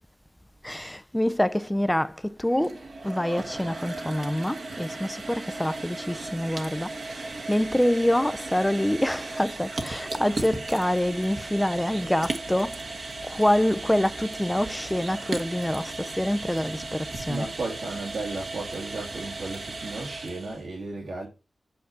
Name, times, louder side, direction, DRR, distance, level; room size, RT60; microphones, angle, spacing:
voice 1, 0.6-17.5, left 1 dB, 10° left, 0.5 m, -26 dB
sound 1, 2.4-20.6, right 2 dB, 65° right, 1.2 m, -36 dB
voice 2, 17.3-21.3, right 3 dB, 80° right, 2.2 m, -34 dB
8.6 x 4.2 x 5.6 m
wide cardioid pair, 85°, 0 cm